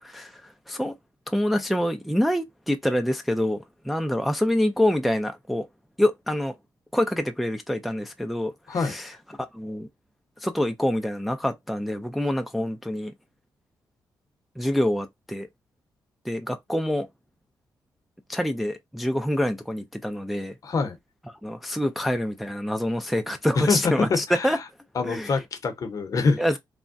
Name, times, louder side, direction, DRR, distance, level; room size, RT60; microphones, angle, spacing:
voice 1, 0.0-0.9 1.3-5.7 6.0-6.6 6.9-9.1 9.5-9.9 10.4-13.1 14.6-15.5 16.2-17.1 18.3-20.6 21.4-24.6 25.0-25.3 26.4-26.6, left 1 dB, ahead, 0.3 m, -26 dB
voice 2, 20.6-21.0 23.6-24.6 25.0-26.4, left 4 dB, 50° left, 0.7 m, -25 dB
3.4 x 2.1 x 2.5 m
cardioid pair, 120°, 8 cm